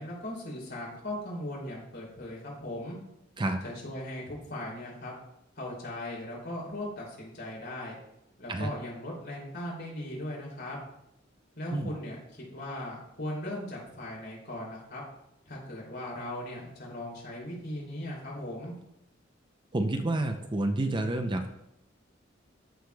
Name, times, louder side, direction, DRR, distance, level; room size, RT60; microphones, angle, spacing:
voice 1, 0.0-3.0 3.6-5.1 5.6-7.9 8.4-10.8 11.6-15.0 15.5-18.7, left 1 dB, 60° left, -4 dB, 3.0 m, -38 dB
voice 2, 19.7-21.5, right 2 dB, 25° right, 6 dB, 0.5 m, -29 dB
14.0 x 4.9 x 2.3 m, 0.84 s
head